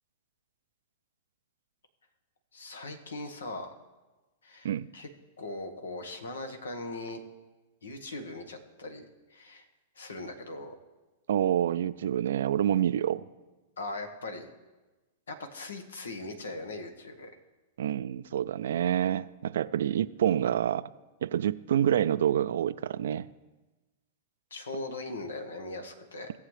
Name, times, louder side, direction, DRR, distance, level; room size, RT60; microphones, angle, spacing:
voice 1, 2.5-3.7 4.4-5.1 5.4-7.2 7.8-9.7 9.9-10.8 13.8-14.5 15.3-17.3 24.5-26.3, left 2 dB, 80° left, 5 dB, 1.3 m, -40 dB
voice 2, 11.3-13.2 17.8-20.9 21.2-23.3, right 10 dB, 70° right, 17 dB, 0.4 m, -27 dB
17.5 x 7.6 x 3.3 m, 1.2 s
hypercardioid pair, 105°, 0 cm